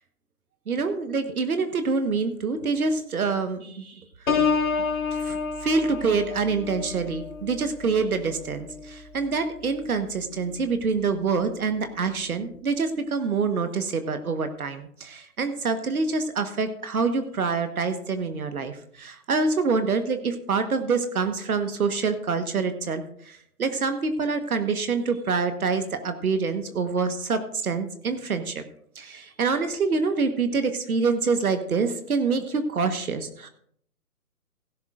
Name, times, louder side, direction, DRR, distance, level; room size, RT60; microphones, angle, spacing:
voice 1, 0.7-4.0 4.8-28.6 28.9-33.5, right 4 dB, 70° right, 9 dB, 1.4 m, -26 dB
Piano, 4.3-9.9 10.4-10.7, left 5 dB, 60° left, 2.3 m, -30 dB
16.5 x 11.0 x 2.5 m, 0.64 s
hypercardioid pair, 150°, 46 cm